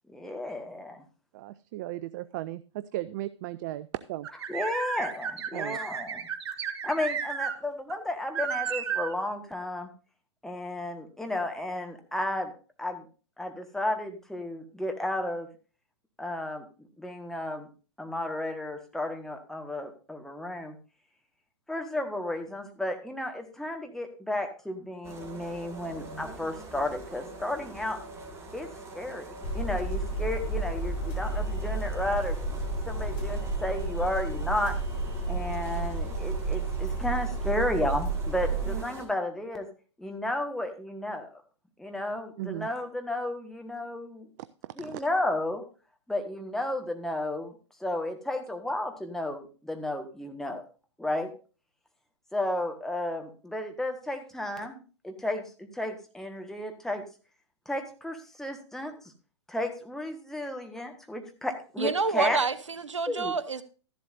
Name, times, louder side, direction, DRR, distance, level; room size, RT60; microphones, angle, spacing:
voice 1, 0.1-1.0 4.5-6.2 6.8-9.9 10.4-12.5 12.8-13.1 13.4-15.5 16.2-17.7 18.0-20.8 21.7-28.0 28.5-28.7 28.9-29.3 29.5-32.6 32.9-34.8 35.3-39.7 40.0-41.3 41.8-44.3 44.8-45.6 46.1-47.5 47.8-50.6 51.0-51.3 52.3-57.0 57.6-58.9 59.5-62.4 63.1-63.3, left 1 dB, 5° left, 1.5 m, -33 dB
voice 2, 1.3-4.3 5.5-5.8 42.4-42.7 44.6-45.0, right 15 dB, 40° right, 0.4 m, -36 dB
sound 1, 4.2-7.5 7.9-8.0 8.3-9.1, right 7 dB, 60° right, 1.2 m, -33 dB
sound 2, 25.0-39.1, right 2 dB, 15° right, 2.2 m, -44 dB
sound 3, 29.4-38.8, right 3 dB, 30° left, 3.7 m, -31 dB
voice 3, 61.8-63.6, right 4 dB, 85° right, 0.9 m, -28 dB
13.0 x 11.0 x 2.6 m
figure-of-eight pair, 110°, 15 cm